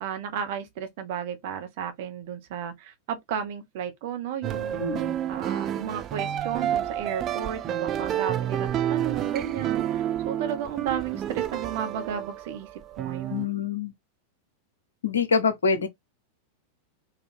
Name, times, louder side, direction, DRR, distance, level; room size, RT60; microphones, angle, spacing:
voice 1, 0.0-4.8 5.3-13.4, right 8 dB, 50° right, 1.0 m, -33 dB
sound 1, 4.4-13.5, right 11 dB, 30° right, 0.5 m, -29 dB
voice 2, 4.8-5.2 13.3-13.9 15.0-15.9, left 5 dB, 70° left, 0.8 m, -25 dB
4.2 x 2.8 x 2.6 m
figure-of-eight pair, 90°, 0 cm